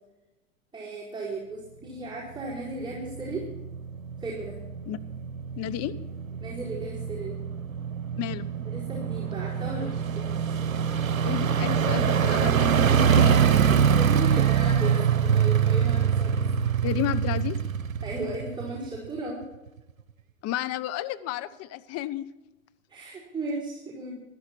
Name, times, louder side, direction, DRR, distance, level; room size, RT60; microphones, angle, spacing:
voice 1, 0.7-3.5 4.2-4.6 6.4-7.4 8.7-10.3 13.7-16.5 18.0-19.5 22.9-24.1, right 2 dB, 10° right, -8 dB, 4.6 m, -35 dB
sound 1, 2.5-19.1 19.4-19.5, right 7 dB, 90° right, 0.8 m, -25 dB
voice 2, 5.6-5.9 8.2-8.5 11.2-13.8 16.8-17.6 20.4-22.3, left 13 dB, 40° left, 13 dB, 0.9 m, -32 dB
15.5 x 12.5 x 4.5 m, 1.0 s
hypercardioid pair, 95°, 40 cm